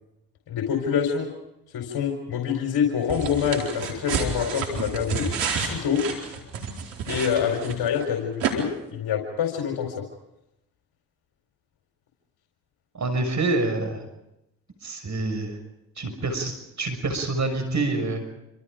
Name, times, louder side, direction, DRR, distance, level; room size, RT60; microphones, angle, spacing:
voice 1, 0.5-1.3 1.7-5.3 5.5-6.0 7.1-9.9, left 8 dB, 65° left, 2 dB, 4.6 m, -26 dB
sound 1, 3.1-8.0 8.4-8.5, right 6 dB, 85° right, 4.5 m, -30 dB
voice 2, 12.9-14.0 14.8-15.6 16.0-18.3, right 2 dB, 45° right, 6 dB, 6.3 m, -27 dB
27.0 x 26.5 x 5.2 m, 0.89 s
hypercardioid pair, 55°, 41 cm